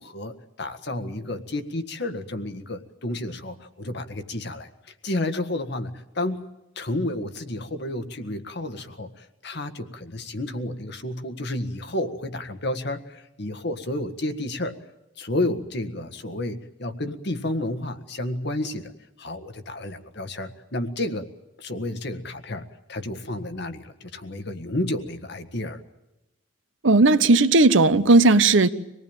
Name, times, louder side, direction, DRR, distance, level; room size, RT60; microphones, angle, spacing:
voice 1, 0.0-6.4 6.7-14.7 15.2-18.9 19.2-21.3 21.6-25.8, left 1 dB, 60° left, 1.7 m, -31 dB
voice 2, 26.8-28.7, right 3 dB, 80° right, 1.1 m, -16 dB
25.5 x 19.0 x 8.9 m
head